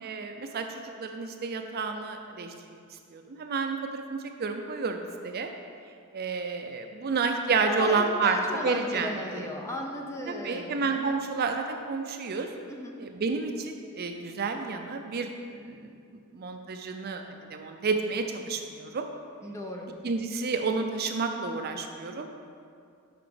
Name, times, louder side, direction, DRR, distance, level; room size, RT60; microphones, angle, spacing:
voice 1, 0.0-2.5 3.1-5.5 6.1-9.5 10.3-12.5 13.0-15.9 16.3-17.2 17.5-19.0 20.0-22.3, right 4 dB, 45° right, 5 dB, 0.4 m, -30 dB
voice 2, 7.7-11.2 12.7-13.0 19.4-19.9, left 1 dB, 15° left, 1 dB, 0.6 m, -36 dB
6.0 x 5.7 x 5.0 m, 2.3 s
head